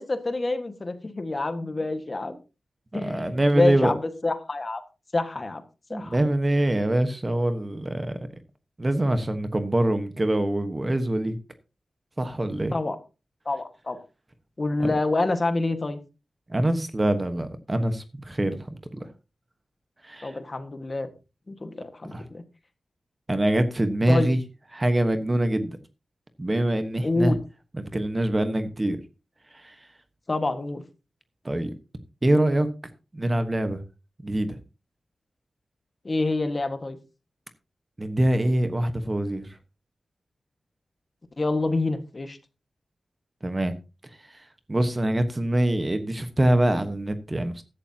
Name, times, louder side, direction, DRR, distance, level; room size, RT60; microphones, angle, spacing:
voice 1, 0.0-2.3 2.9-4.8 5.1-5.6 5.9-6.2 12.7-13.0 13.4-14.0 14.6-16.0 20.2-21.1 21.5-22.4 24.1-24.3 27.0-27.4 30.3-30.8 36.0-37.0 41.4-42.4, left 2 dB, 30° left, 1.6 m, -27 dB
voice 2, 2.9-3.9 5.9-8.2 8.8-11.4 12.2-12.7 14.8-14.9 16.5-18.6 18.9-19.1 20.0-20.4 22.1-22.2 23.3-24.4 24.7-25.8 26.4-27.3 27.8-29.0 29.5-29.7 31.4-31.7 32.2-32.7 33.1-33.8 34.2-34.6 38.0-39.5 43.4-43.7 44.7-47.6, right 1 dB, 20° right, 1.2 m, -24 dB
15.0 x 11.5 x 2.9 m
wide cardioid pair, 135°, 0 cm